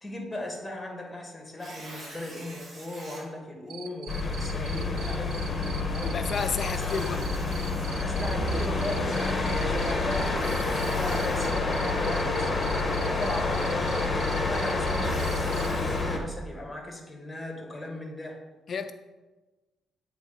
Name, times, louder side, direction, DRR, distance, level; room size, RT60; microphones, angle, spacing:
voice 1, 0.0-5.8 6.7-6.8 8.0-12.7 13.1-13.9 14.4-18.4, left 1 dB, 10° left, 1 dB, 1.4 m, -37 dB
Tearing, 1.5-3.2 3.9-4.0 6.2-8.3 10.2-11.5 14.6-16.0, right 1 dB, 50° right, 2.2 m, -46 dB
Cricket, 3.7-15.7, right 9 dB, 75° right, 0.5 m, -43 dB
sound 1, 4.1-16.2, left 3 dB, 25° left, 1.0 m, -28 dB
voice 2, 6.0-7.2 18.7-18.9, left 5 dB, 50° left, 9 dB, 0.4 m, -31 dB
8.5 x 3.5 x 3.9 m, 1.2 s
cardioid pair, 90°, 0 cm